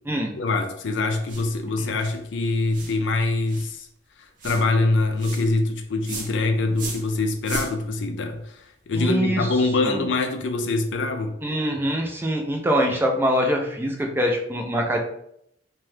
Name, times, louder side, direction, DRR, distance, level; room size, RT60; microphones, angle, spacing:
voice 1, 0.4-3.9 4.4-11.4, left 2 dB, 80° left, 0.4 m, -24 dB
sound 1, 1.3-1.5 2.0-2.2 2.7-3.0 3.5-3.7 4.4-4.7 5.2-5.5 6.0-6.3 6.8-7.1 7.4-7.7, right 2 dB, 45° right, 0.7 m, -34 dB
voice 2, 8.9-9.5 9.8-10.0 11.4-15.0, equal, 10° right, 0.4 m, -24 dB
2.7 x 2.2 x 3.2 m
head